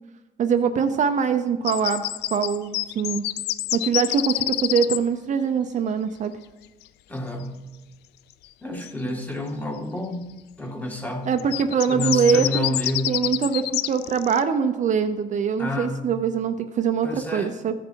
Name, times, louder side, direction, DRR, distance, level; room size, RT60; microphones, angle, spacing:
voice 1, 0.4-2.0 2.3-3.2 3.7-6.3 11.3-12.7 13.1-17.7, right 6 dB, 45° right, 7 dB, 0.7 m, -23 dB
sound 1, 1.6-5.0 8.8-8.9 11.3-14.4, left 15 dB, 75° left, 0.4 m, -27 dB
voice 2, 7.1-7.6 8.6-10.3 10.6-11.3 11.9-13.3 15.6-16.0 17.0-17.5, left 1 dB, 10° left, 2 dB, 1.8 m, -29 dB
14.5 x 6.9 x 4.6 m, 1.1 s
cardioid pair, 110°, 17 cm